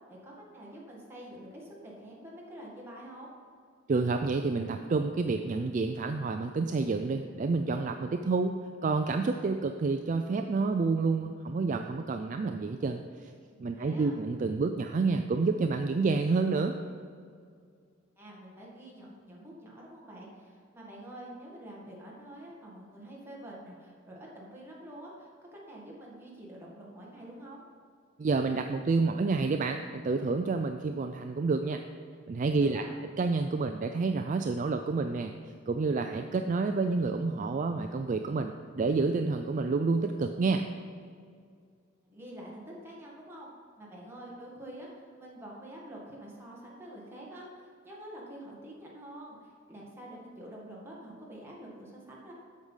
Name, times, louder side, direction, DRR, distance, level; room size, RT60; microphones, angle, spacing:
voice 1, 0.1-3.3 13.7-14.2 18.2-27.6 32.6-32.9 42.0-43.5 43.8-52.3, right 1 dB, 10° right, -4 dB, 1.8 m, -47 dB
voice 2, 3.9-8.5 8.8-13.3 13.6-16.7 28.2-31.8 32.3-32.8 33.2-35.3 35.7-40.6, right 4 dB, 40° right, 6 dB, 0.3 m, -29 dB
8.1 x 6.5 x 5.6 m, 2.2 s
head